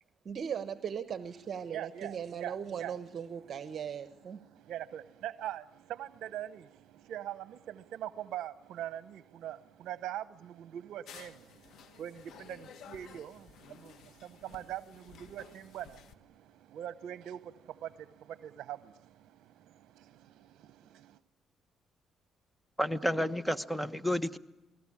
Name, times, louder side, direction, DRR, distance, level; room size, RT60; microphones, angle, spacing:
voice 1, 0.2-4.4, right 7 dB, 50° right, 1.2 m, -38 dB
voice 2, 1.7-3.0 3.4-3.6 4.3-21.2, right 11 dB, 80° right, 0.8 m, -43 dB
sound 1, 11.1-16.2, left 8 dB, 75° left, 1.5 m, -54 dB
voice 3, 22.8-24.4, equal, 5° left, 1.2 m, -31 dB
28.5 x 20.0 x 8.7 m
cardioid pair, 90°, 0 cm